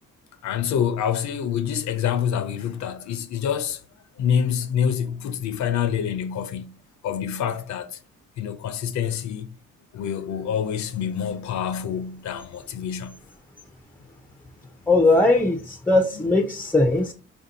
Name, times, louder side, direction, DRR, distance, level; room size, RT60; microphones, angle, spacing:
voice 1, 0.4-3.8 4.2-6.7 7.0-8.0 8.4-9.5 9.9-13.2, left 8 dB, 70° left, 0.5 m, -26 dB
voice 2, 14.9-17.1, left 2 dB, 5° left, 0.4 m, -19 dB
5.0 x 2.6 x 2.7 m
cardioid pair, 90°, 30 cm